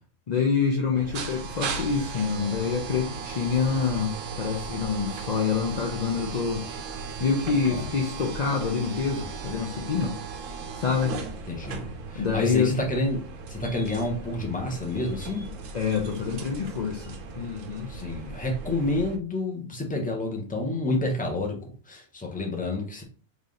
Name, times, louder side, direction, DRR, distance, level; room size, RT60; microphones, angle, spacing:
voice 1, 0.3-6.9 7.2-10.2 10.7-11.1 12.1-12.7 15.7-17.9, left 5 dB, 65° left, 0 dB, 0.4 m, -27 dB
sound 1, 0.9-19.2, right 5 dB, 70° right, 1.0 m, -37 dB
voice 2, 11.5-15.5 17.9-23.0, left 2 dB, 10° left, 1 dB, 0.6 m, -29 dB
3.2 x 2.7 x 3.8 m, 0.39 s
omnidirectional pair, 1.5 m